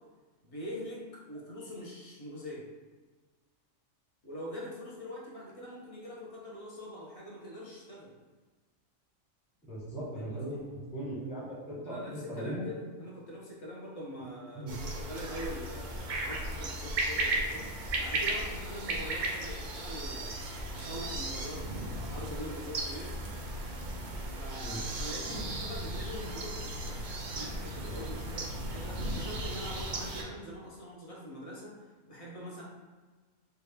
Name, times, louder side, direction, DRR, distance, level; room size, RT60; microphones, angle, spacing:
voice 1, 0.4-2.7 4.2-8.1 10.2-10.6 11.8-23.2 24.3-32.6, equal, 35° left, -4 dB, 0.6 m, -44 dB
voice 2, 9.7-12.6 14.2-14.3 14.5-14.7 24.6-24.8, right 1 dB, 10° right, -8 dB, 0.5 m, -38 dB
sound 1, 14.7-30.2, right 1 dB, 65° right, 0.5 m, -36 dB
3.2 x 2.2 x 3.5 m, 1.4 s
omnidirectional pair, 1.4 m